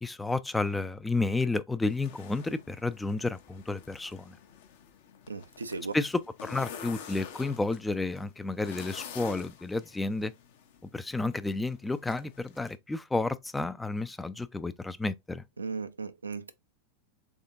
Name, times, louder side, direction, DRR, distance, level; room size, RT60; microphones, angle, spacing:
voice 1, 0.0-4.3 5.9-10.3 10.9-15.4, left 3 dB, 10° left, 0.3 m, -31 dB
sound 1, 1.9-12.8, left 8 dB, 55° left, 0.7 m, -48 dB
voice 2, 5.3-5.9 15.6-16.5, right 4 dB, 75° right, 0.4 m, -36 dB
3.6 x 3.5 x 2.4 m
figure-of-eight pair, 90°, 0 cm